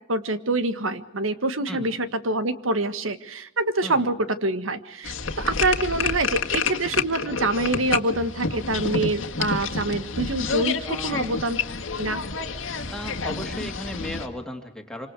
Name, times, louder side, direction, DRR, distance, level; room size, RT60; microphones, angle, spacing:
voice 1, 0.1-11.6 12.0-12.2, right 2 dB, 85° right, 12 dB, 1.7 m, -26 dB
sound 1, 5.0-14.3, left 5 dB, 75° left, 1.9 m, -29 dB
voice 2, 10.9-11.3 12.9-15.1, left 1 dB, 5° left, 3 dB, 2.7 m, -36 dB
26.5 x 26.0 x 4.8 m, 0.73 s
head